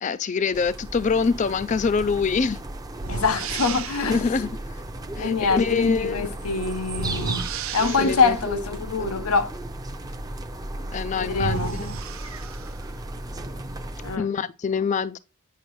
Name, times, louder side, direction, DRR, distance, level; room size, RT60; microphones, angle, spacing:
voice 1, 0.0-2.6 4.0-4.5 5.2-6.3 8.0-8.4 10.9-11.9 14.2-15.2, left 5 dB, 35° left, 0.3 m, -25 dB
sound 1, 0.5-14.2, right 1 dB, 15° right, 0.6 m, -35 dB
sound 2, 2.0-2.2 3.0-4.2 6.9-8.5 10.7-10.8 11.3-12.9, right 5 dB, 70° right, 0.6 m, -32 dB
voice 2, 3.1-4.2 5.1-7.5 7.7-9.5 11.1-11.8 14.0-14.3, left 4 dB, 85° left, 0.7 m, -25 dB
9.0 x 6.4 x 3.1 m
head